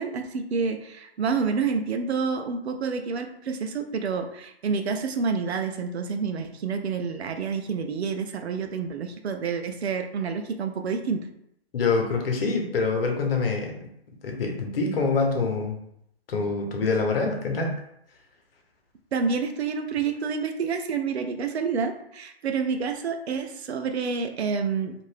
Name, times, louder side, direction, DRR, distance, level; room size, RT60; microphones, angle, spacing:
voice 1, 0.0-11.3 19.1-24.9, right 5 dB, 85° right, 6 dB, 0.5 m, -28 dB
voice 2, 11.7-13.8 14.2-15.8 16.3-17.8, left 4 dB, 65° left, 2 dB, 0.9 m, -25 dB
2.7 x 2.5 x 3.3 m, 0.76 s
hypercardioid pair, 150°, 32 cm